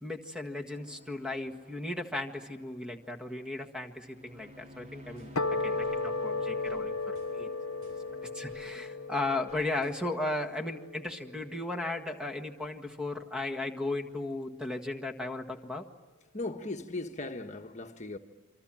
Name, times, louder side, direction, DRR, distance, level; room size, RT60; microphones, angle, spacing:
voice 1, 0.0-7.5 8.3-15.9, left 2 dB, 5° right, 1.7 m, -36 dB
sound 1, 0.7-9.5, equal, 35° right, 3.3 m, -53 dB
sound 2, 5.2-6.0 6.6-6.8 7.1-8.7 9.5-10.3, equal, 80° right, 7.2 m, -62 dB
sound 3, 5.4-11.9, left 3 dB, 85° left, 1.1 m, -35 dB
voice 2, 8.1-8.6 16.3-18.2, left 2 dB, 35° left, 1.3 m, -40 dB
28.0 x 25.0 x 7.6 m
head